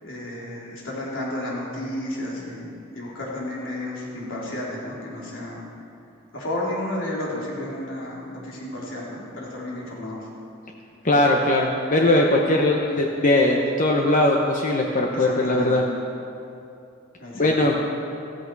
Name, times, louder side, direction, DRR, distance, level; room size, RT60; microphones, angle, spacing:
voice 1, 0.0-5.7 6.3-10.2 15.1-15.8 17.2-17.6, left 1 dB, 70° left, -5 dB, 3.3 m, -32 dB
voice 2, 11.0-15.8 17.3-17.7, left 1 dB, 40° left, 0 dB, 0.9 m, -20 dB
15.0 x 14.0 x 4.7 m, 2.7 s
head